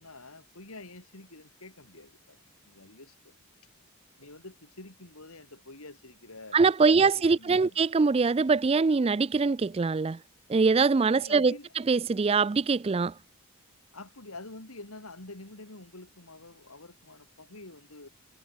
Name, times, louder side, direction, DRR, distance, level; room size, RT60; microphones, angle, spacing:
voice 1, 0.0-3.4 4.2-7.8 11.2-11.7 13.9-18.1, left 2 dB, 75° left, 3.6 m, -47 dB
voice 2, 6.5-10.2 10.5-11.5 11.9-13.1, right 4 dB, 25° right, 0.3 m, -23 dB
head